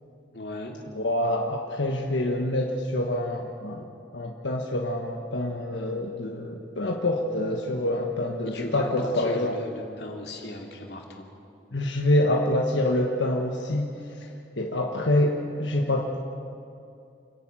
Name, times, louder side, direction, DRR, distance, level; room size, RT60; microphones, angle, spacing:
voice 1, 0.3-0.8 8.5-11.3, left 1 dB, 65° left, 1 dB, 2.8 m, -37 dB
voice 2, 0.9-3.9 4.1-9.6 11.7-14.3 14.6-16.2, left 1 dB, 85° left, 0 dB, 1.4 m, -26 dB
28.5 x 11.0 x 9.0 m, 2.6 s
head